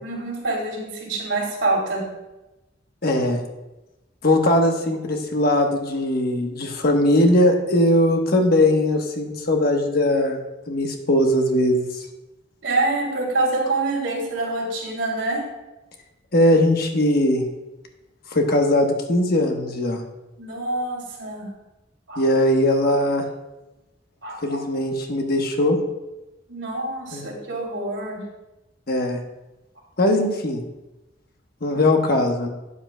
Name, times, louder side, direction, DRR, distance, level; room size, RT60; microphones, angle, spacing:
voice 1, 0.0-2.1 12.6-15.4 20.4-21.5 22.1-22.2 24.2-24.6 26.5-28.2, right 2 dB, 85° right, -2 dB, 2.8 m, -26 dB
voice 2, 3.0-3.4 4.2-10.4 10.7-11.9 16.3-17.4 18.3-20.0 22.2-23.2 24.4-25.8 27.1-27.3 28.9-29.2 30.0-30.6 31.6-32.5, left 1 dB, 55° left, 3 dB, 1.2 m, -20 dB
12.5 x 8.7 x 2.3 m, 1.0 s
head